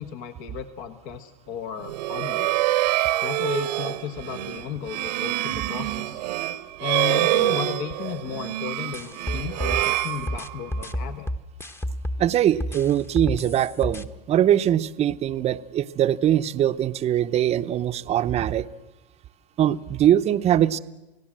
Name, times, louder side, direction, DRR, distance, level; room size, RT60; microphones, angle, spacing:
voice 1, 0.0-2.7 3.2-6.2 6.8-11.3, left 9 dB, 55° left, 8 dB, 1.5 m, -34 dB
sound 1, 1.8-10.8, right 16 dB, 75° right, 1.2 m, -26 dB
sound 2, 8.9-12.3 12.6-14.0, equal, 10° left, 1.1 m, -30 dB
voice 2, 12.2-18.7 19.6-20.8, right 11 dB, 30° right, 12 dB, 0.8 m, -22 dB
29.0 x 17.5 x 7.6 m, 1.0 s
supercardioid pair, 120°, 21 cm